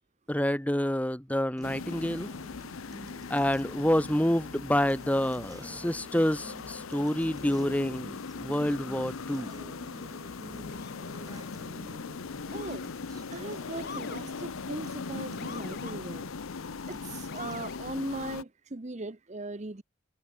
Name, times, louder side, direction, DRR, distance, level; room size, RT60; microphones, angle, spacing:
voice 1, 0.3-2.3 3.3-9.5, equal, 5° left, 1.1 m, -28 dB
sound 1, 1.6-18.4, left 4 dB, 80° left, 0.7 m, -40 dB
Acoustic guitar, 1.6-17.6, equal, 20° right, 6.9 m, -51 dB
Motor vehicle (road) / Siren, 10.7-11.1 12.5-13.0 13.8-14.3 15.4-16.0 17.3-17.8, left 5 dB, 50° left, 2.3 m, -45 dB
voice 2, 12.5-12.9 13.3-16.3 16.9-19.8, right 2 dB, 35° right, 0.8 m, -39 dB
head